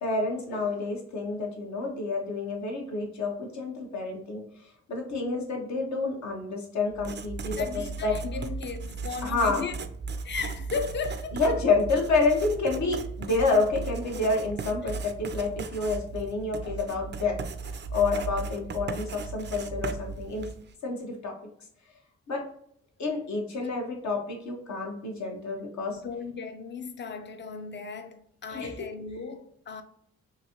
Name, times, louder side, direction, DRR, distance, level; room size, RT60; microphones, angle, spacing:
voice 1, 0.0-4.4 4.9-8.1 9.2-9.6 11.3-17.3 17.9-20.5 20.8-21.3 22.3-22.4 23.0-26.0 28.5-28.7, left 3 dB, 65° left, 1.0 m, -28 dB
Writing, 6.9-20.7, right 4 dB, 35° right, 0.4 m, -37 dB
voice 2, 7.6-9.8 10.2-11.5 25.9-29.8, left 5 dB, 35° left, 0.5 m, -36 dB
3.0 x 2.6 x 2.8 m
supercardioid pair, 55°, 31 cm